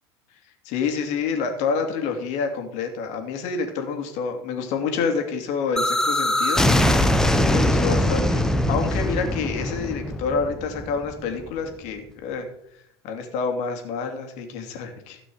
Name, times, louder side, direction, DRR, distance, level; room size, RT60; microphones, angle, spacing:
voice 1, 0.6-6.6 7.5-12.5 13.0-15.2, left 5 dB, 55° left, 4 dB, 2.9 m, -28 dB
sound 1, 5.8-11.5, left 1 dB, 5° left, 1.1 m, -22 dB
16.5 x 6.0 x 4.9 m, 0.75 s
hypercardioid pair, 100°, 14 cm